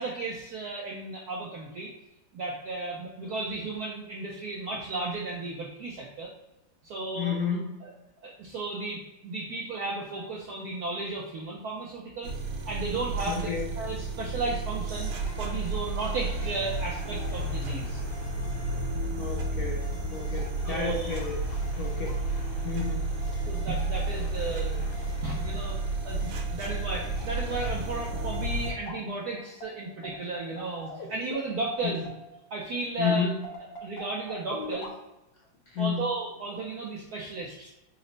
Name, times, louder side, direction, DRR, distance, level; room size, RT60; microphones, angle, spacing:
voice 1, 0.0-1.9 2.3-6.3 6.8-7.4 7.8-7.9 8.2-12.3 12.7-13.5 13.8-15.1 15.4-18.0 20.1-20.2 20.7-21.2 23.5-24.9 25.2-25.8 26.0-32.0 32.5-33.3 33.8-34.9 35.8-37.7, right 3 dB, 90° right, -2 dB, 0.8 m, -34 dB
voice 2, 7.2-7.7 13.3-13.7 19.2-21.4 21.8-22.3 22.6-23.4 31.8-32.0 33.0-33.4 35.7-36.1, left 6 dB, 80° left, -3 dB, 0.8 m, -31 dB
sound 1, 12.2-28.7, right 2 dB, 70° right, 1.3 m, -32 dB
sound 2, 14.9-32.6 33.0-34.9, equal, 65° left, 1.2 m, -46 dB
4.2 x 2.0 x 3.8 m, 0.95 s
omnidirectional pair, 2.3 m